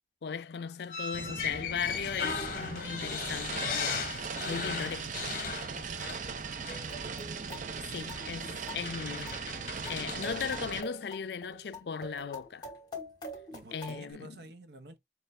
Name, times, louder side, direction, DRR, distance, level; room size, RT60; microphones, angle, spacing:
voice 1, 0.2-4.1 4.5-5.2 7.9-9.4 9.9-12.7 13.7-14.4, left 6 dB, 70° left, 0.4 m, -37 dB
sound 1, 0.9-6.4 6.6-6.9 8.1-8.3 8.8-10.6, left 6 dB, 50° left, 0.9 m, -37 dB
sound 2, 1.1-10.8, right 5 dB, 45° right, 0.5 m, -39 dB
voice 2, 5.3-5.9 13.5-15.0, right 1 dB, 75° right, 0.8 m, -51 dB
sound 3, 6.7-14.1, equal, 25° left, 1.6 m, -46 dB
6.6 x 2.3 x 3.3 m
head